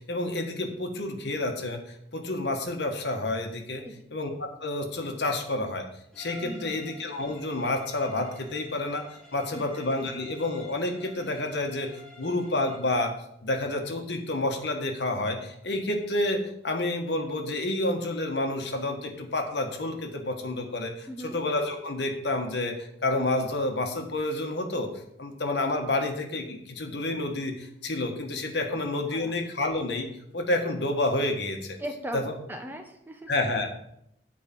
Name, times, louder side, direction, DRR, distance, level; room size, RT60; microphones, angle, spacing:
voice 1, 0.0-1.8 2.1-3.8 4.1-5.8 6.2-9.0 9.3-11.9 12.2-13.1 13.4-24.9 25.2-30.1 30.3-31.8 32.1-32.2 33.3-33.7, left 2 dB, 75° left, 4 dB, 1.4 m, -29 dB
Bowed string instrument, 6.1-12.9, left 1 dB, 5° left, 1.4 m, -50 dB
voice 2, 6.4-6.8 9.5-9.8 21.1-21.4 28.7-28.8 29.1-29.3 31.8-32.2 32.5-33.3, right 1 dB, 10° right, 4 dB, 0.8 m, -38 dB
8.2 x 4.7 x 7.0 m, 0.74 s
head